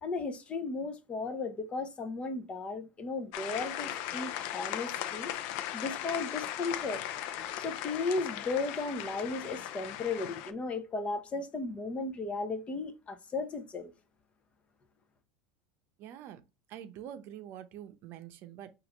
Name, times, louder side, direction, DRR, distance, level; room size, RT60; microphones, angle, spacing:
voice 1, 0.0-7.0 7.6-13.9, left 3 dB, 25° left, 0.7 m, -35 dB
sound 1, 3.3-10.5, left 11 dB, 65° left, 0.5 m, -38 dB
voice 2, 16.0-16.4 16.7-18.7, right 10 dB, 50° right, 0.7 m, -45 dB
6.2 x 2.5 x 3.0 m
supercardioid pair, 125°, 5 cm